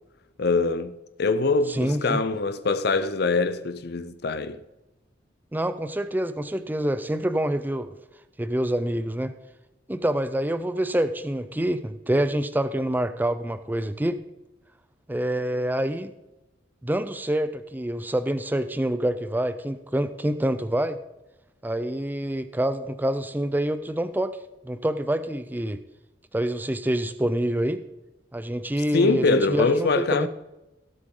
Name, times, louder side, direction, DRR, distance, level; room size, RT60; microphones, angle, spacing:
voice 1, 0.4-0.9 1.2-4.6 28.9-30.3, left 3 dB, 60° left, 0.6 m, -23 dB
voice 2, 1.7-2.2 5.5-7.9 8.4-9.3 9.9-14.2 15.1-16.1 16.8-21.0 21.6-24.4 24.6-25.8 26.3-27.8 28.3-30.3, right 1 dB, 10° right, 0.5 m, -26 dB
17.5 x 7.7 x 3.8 m
head